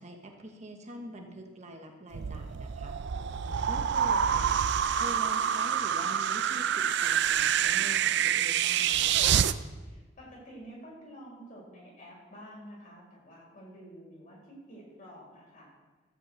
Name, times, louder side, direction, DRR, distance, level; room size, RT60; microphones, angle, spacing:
voice 1, 0.0-3.0 3.7-4.5 5.0-9.2, right 1 dB, 35° right, 3 dB, 1.2 m, -44 dB
sound 1, 2.1-9.5, right 9 dB, 65° right, 0.4 m, -27 dB
voice 2, 9.8-15.7, equal, 45° left, -4 dB, 4.8 m, -49 dB
14.0 x 5.5 x 7.9 m, 1.3 s
head